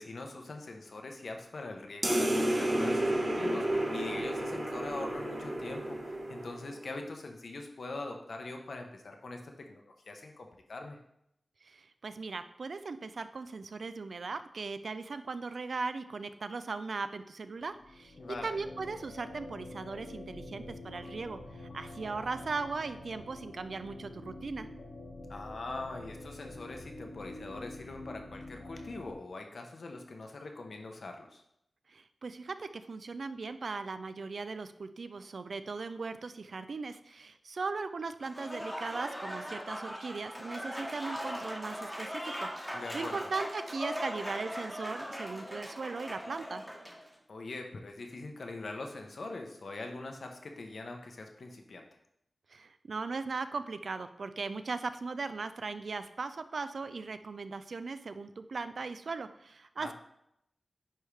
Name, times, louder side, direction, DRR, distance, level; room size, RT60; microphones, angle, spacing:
voice 1, 0.0-11.0 18.2-18.6 25.3-31.4 42.7-43.3 47.3-51.9 59.8-59.9, left 2 dB, 70° left, 3 dB, 0.8 m, -42 dB
sound 1, 2.0-6.9, right 1 dB, 40° right, 1.2 m, -31 dB
voice 2, 11.6-24.7 31.9-46.6 52.5-59.9, right 4 dB, 70° right, 11 dB, 0.4 m, -38 dB
sound 2, 17.6-29.1, left 2 dB, 85° left, 1.5 m, -47 dB
Applause / Crowd, 38.2-47.1, equal, ahead, 1.1 m, -40 dB
9.8 x 3.5 x 3.3 m, 0.78 s
wide cardioid pair, 80°, 0 cm